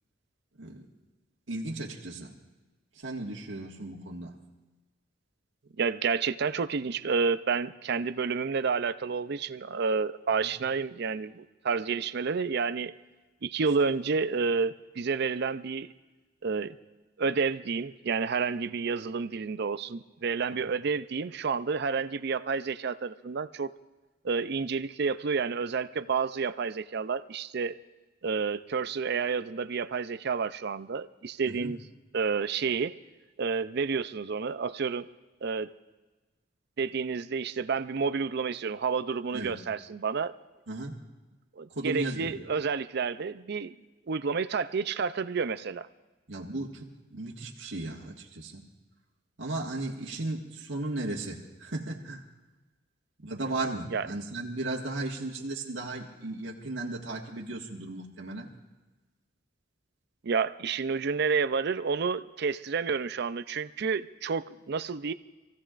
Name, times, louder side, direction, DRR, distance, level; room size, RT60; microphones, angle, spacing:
voice 1, 1.5-2.3 3.0-4.3 10.4-10.5 31.5-31.7 39.3-39.5 40.7-40.9 41.7-42.3 46.3-46.8 47.1-48.6 49.4-52.2 53.2-58.5, right 2 dB, 90° right, -2 dB, 1.7 m, -35 dB
voice 2, 5.8-12.9 13.4-15.9 16.4-16.8 17.2-23.7 24.2-27.8 28.2-31.8 32.1-32.9 33.4-35.1 35.4-35.7 36.8-40.3 41.6-43.8 44.1-45.9 53.9-54.1 60.2-65.1, right 5 dB, 60° right, 13 dB, 0.5 m, -30 dB
27.0 x 16.0 x 2.5 m, 1.2 s
head